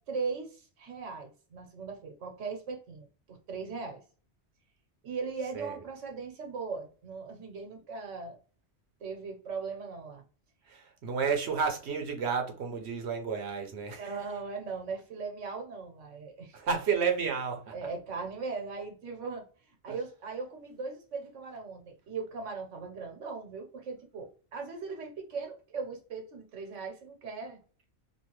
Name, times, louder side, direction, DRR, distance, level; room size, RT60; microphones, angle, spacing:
voice 1, 0.1-4.0 5.0-8.4 9.0-10.2 12.7-12.8 14.0-16.6 17.7-27.6, right 4 dB, 90° right, 1.2 m, -39 dB
voice 2, 10.7-14.1 16.5-17.7, right 6 dB, 70° right, 0.9 m, -31 dB
3.1 x 2.4 x 3.0 m
omnidirectional pair, 1.2 m